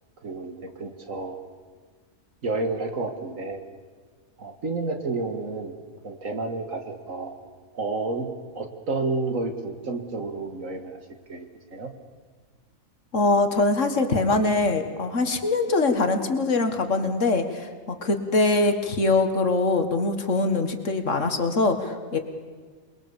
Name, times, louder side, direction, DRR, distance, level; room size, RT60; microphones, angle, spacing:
voice 1, 0.2-1.4 2.4-3.6 4.4-5.7 6.0-7.4 7.7-8.3 8.5-11.0 11.3-11.5 11.7-11.9, right 3 dB, 70° right, 6 dB, 2.3 m, -30 dB
voice 2, 13.1-22.2, left 3 dB, 60° left, 6 dB, 2.1 m, -23 dB
28.0 x 21.5 x 7.1 m, 1.5 s
omnidirectional pair, 1.5 m